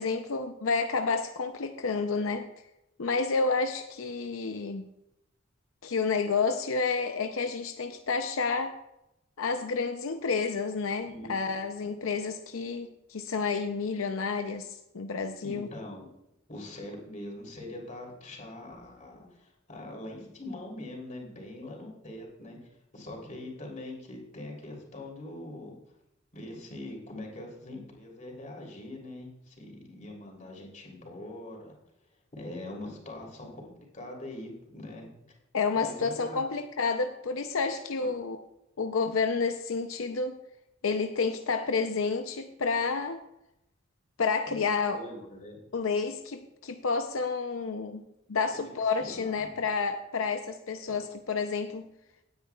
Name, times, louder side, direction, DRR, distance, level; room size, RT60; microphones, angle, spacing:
voice 1, 0.0-2.5 3.0-4.9 5.8-8.8 9.4-14.7 14.9-15.7 35.5-38.4 38.8-40.4 40.8-43.2 44.2-45.0 45.7-48.0 48.3-51.9, left 4 dB, 85° left, 7 dB, 0.6 m, -30 dB
voice 2, 11.0-11.9 15.4-16.0 16.5-22.6 22.9-25.8 26.3-31.7 32.3-35.1 35.7-36.4 44.5-44.6 44.9-45.6 48.5-48.7 49.0-49.5 50.9-51.0, left 1 dB, 40° left, 0 dB, 3.3 m, -43 dB
17.5 x 9.4 x 2.4 m, 0.87 s
head